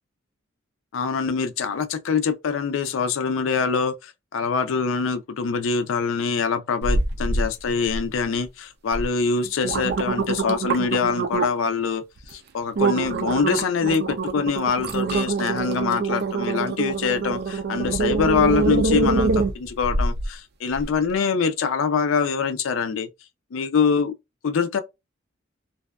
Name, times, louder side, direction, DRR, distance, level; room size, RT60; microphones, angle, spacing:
voice 1, 0.9-3.9 4.3-12.0 12.3-23.1 23.5-24.1 24.4-24.8, left 5 dB, 75° left, 0.4 m, -24 dB
sound 1, 6.8-7.5 7.8-8.4 8.9-9.0 9.4-11.7 12.2-12.3 12.8-20.3 20.7-20.8, right 3 dB, 55° right, 0.5 m, -24 dB
2.6 x 2.3 x 2.2 m
head